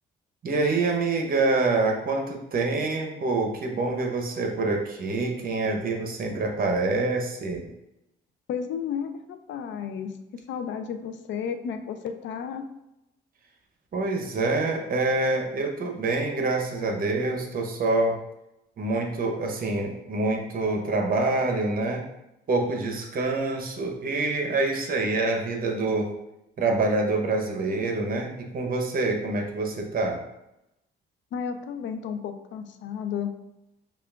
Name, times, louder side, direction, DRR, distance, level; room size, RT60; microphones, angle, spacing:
voice 1, 0.4-7.7 13.9-18.2 18.8-22.1 22.5-26.1 26.6-30.2, right 3 dB, 45° right, 2 dB, 0.8 m, -26 dB
voice 2, 8.5-10.1 10.5-12.6 31.3-33.3, left 7 dB, 65° left, 7 dB, 0.4 m, -32 dB
5.5 x 2.4 x 2.3 m, 0.87 s
cardioid pair, 90°, 20 cm